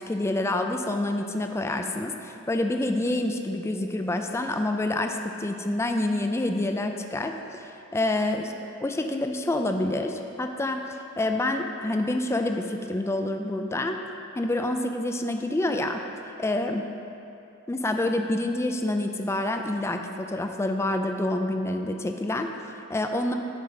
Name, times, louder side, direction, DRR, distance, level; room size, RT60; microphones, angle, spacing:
voice 1, 0.0-8.5 8.8-14.0 14.4-16.0 16.4-16.8 17.7-23.4, left 1 dB, 15° left, 5 dB, 0.4 m, -27 dB
9.4 x 5.2 x 5.8 m, 2.8 s
head